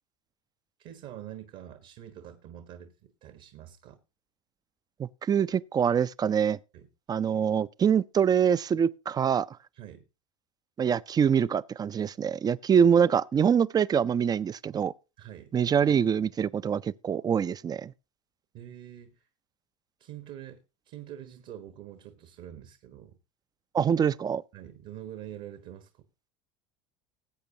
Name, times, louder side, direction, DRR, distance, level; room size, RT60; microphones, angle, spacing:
voice 1, 0.8-4.0 6.7-6.9 9.7-10.0 15.2-15.5 18.5-19.3 20.0-23.2 24.5-26.1, right 11 dB, 55° right, 1.3 m, -45 dB
voice 2, 5.0-6.6 7.1-9.5 10.8-14.9 15.5-17.9 23.7-24.4, right 7 dB, 25° right, 0.5 m, -24 dB
19.5 x 8.1 x 2.8 m
hypercardioid pair, 80°, 17 cm